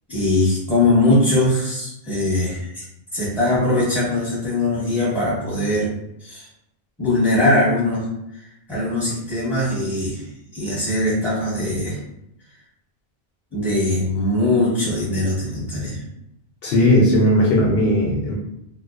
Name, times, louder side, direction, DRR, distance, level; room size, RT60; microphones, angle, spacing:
voice 1, 0.1-2.8 3.1-5.9 6.2-6.5 7.0-8.1 8.7-10.2 10.5-12.0 13.5-16.0, left 2 dB, ahead, -7 dB, 0.8 m, -21 dB
voice 2, 16.6-18.3, left 1 dB, 70° left, -3 dB, 0.7 m, -17 dB
2.4 x 2.2 x 2.4 m, 0.80 s
omnidirectional pair, 1.1 m